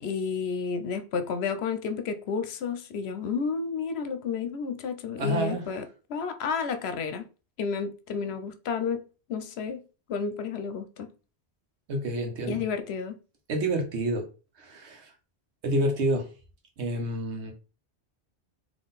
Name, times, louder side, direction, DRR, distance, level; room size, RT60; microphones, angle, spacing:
voice 1, 0.0-7.3 7.6-9.0 9.3-9.8 10.1-11.1 12.5-13.2, left 5 dB, 70° left, 0.9 m, -31 dB
voice 2, 5.2-5.6 11.9-12.6 13.5-14.3 14.6-15.1 15.6-16.3 16.8-17.5, right 1 dB, 85° right, 1.2 m, -28 dB
3.8 x 2.9 x 3.9 m
omnidirectional pair, 1.1 m